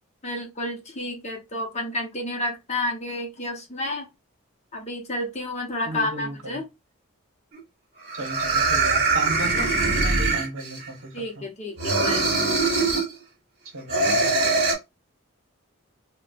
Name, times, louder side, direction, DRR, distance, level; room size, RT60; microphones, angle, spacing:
voice 1, 0.2-4.1 4.7-6.7 11.1-12.3, left 1 dB, 30° left, 0.8 m, -30 dB
voice 2, 5.9-6.6 8.1-9.7 10.0-11.5 13.7-14.3, right 2 dB, 65° right, 0.9 m, -34 dB
sound 1, 7.5-7.6 8.1-10.9 11.8-13.1 13.9-14.7, right 3 dB, 50° right, 1.3 m, -22 dB
4.1 x 2.3 x 2.3 m
head